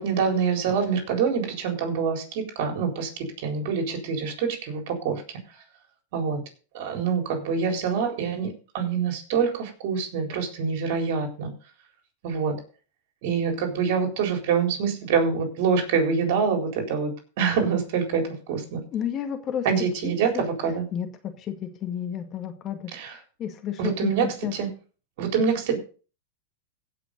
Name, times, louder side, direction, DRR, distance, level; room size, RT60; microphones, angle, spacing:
voice 1, 0.0-5.2 6.1-6.4 6.7-11.5 12.2-12.6 13.2-17.1 17.4-18.8 19.6-20.8 22.9-23.2 23.8-24.3 24.5-24.7 25.2-25.8, right 6 dB, 60° right, 4 dB, 4.0 m, -25 dB
voice 2, 18.9-19.7 20.0-20.4 20.9-22.9 23.4-24.1 24.4-24.5, left 9 dB, 35° left, 7 dB, 1.9 m, -31 dB
16.0 x 5.8 x 5.3 m, 0.37 s
hypercardioid pair, 120°, 0 cm